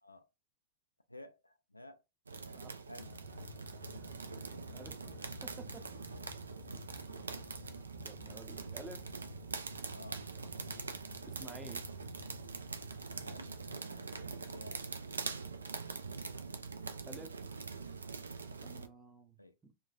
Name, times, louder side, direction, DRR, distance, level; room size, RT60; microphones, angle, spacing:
voice 1, 1.1-2.0 2.3-3.2 4.4-4.6 9.9-10.2 13.2-14.9 19.4-19.5, left 1 dB, 85° left, 0.3 m, -53 dB
sound 1, 2.3-18.9, right 4 dB, 75° right, 0.3 m, -44 dB
sound 2, 3.0-13.7, left 6 dB, 30° right, 1.2 m, -55 dB
voice 2, 4.7-5.1 5.4-6.0 8.0-9.0 11.3-11.8 17.0-17.4 18.6-19.3 19.6-19.7, right 3 dB, 15° right, 0.6 m, -51 dB
2.9 x 2.2 x 2.4 m
figure-of-eight pair, 90°, 0 cm